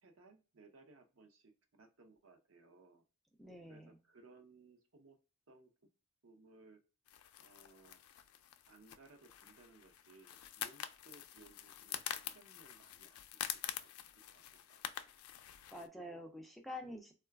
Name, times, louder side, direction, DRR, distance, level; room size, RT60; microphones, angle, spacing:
voice 1, 0.0-3.0 3.6-5.2 5.5-5.7 6.2-6.8 7.4-8.0 8.7-12.0 12.3-13.2 13.8-13.9 14.3-14.8, right 3 dB, 70° right, 5 dB, 0.7 m, -62 dB
voice 2, 3.4-4.0 15.7-17.1, left 1 dB, ahead, 2 dB, 0.3 m, -47 dB
sound 1, 7.1-15.9, left 11 dB, 90° left, 0.4 m, -46 dB
3.8 x 2.3 x 2.2 m, 0.32 s
head